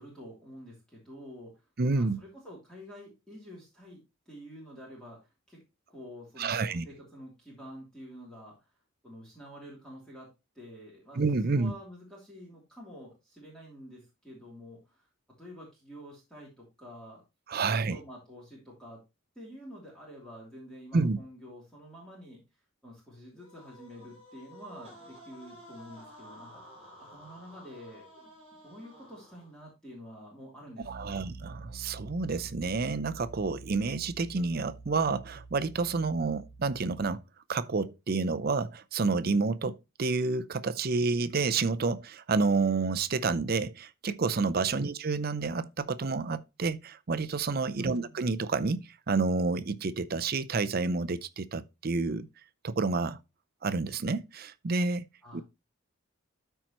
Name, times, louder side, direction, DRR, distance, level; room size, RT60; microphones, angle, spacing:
voice 1, 0.0-1.6 1.9-5.6 5.9-8.7 9.0-10.3 10.5-11.2 11.5-15.1 15.4-17.2 17.7-19.0 19.3-22.4 22.8-26.6 27.1-28.4 28.6-31.2 44.7-44.9 47.8-48.2 55.2-55.4, equal, 5° left, 2.9 m, -48 dB
voice 2, 1.8-2.2 6.4-6.9 11.1-11.7 17.5-18.0 20.9-21.2 30.9-37.2 37.5-52.3 52.6-53.2 53.6-55.1 55.3-55.4, right 4 dB, 45° right, 0.5 m, -29 dB
sound 1, 23.4-29.7, equal, 25° right, 5.5 m, -52 dB
Piano, 30.8-37.1, right 3 dB, 55° left, 1.9 m, -47 dB
13.0 x 4.5 x 3.0 m
head